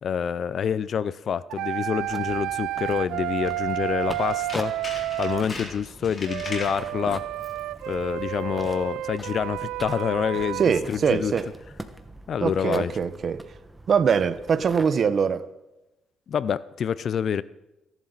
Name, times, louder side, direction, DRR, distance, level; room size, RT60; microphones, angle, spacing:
voice 1, 0.0-4.7 5.2-7.2 7.9-10.6 10.9-11.3 12.3-13.0 16.3-17.4, left 8 dB, 55° left, 0.5 m, -27 dB
sound 1, 1.5-5.5 6.3-10.8, right 15 dB, 90° right, 0.5 m, -31 dB
sound 2, 2.0-14.9, right 1 dB, 10° right, 1.5 m, -43 dB
Tools, 4.0-6.8 7.3-7.7 7.9-8.0, left 2 dB, 40° left, 4.8 m, -39 dB
voice 2, 10.6-11.5 12.4-13.4 13.9-15.5, right 6 dB, 50° right, 1.0 m, -23 dB
29.5 x 11.5 x 4.1 m
cardioid pair, 90°, 0 cm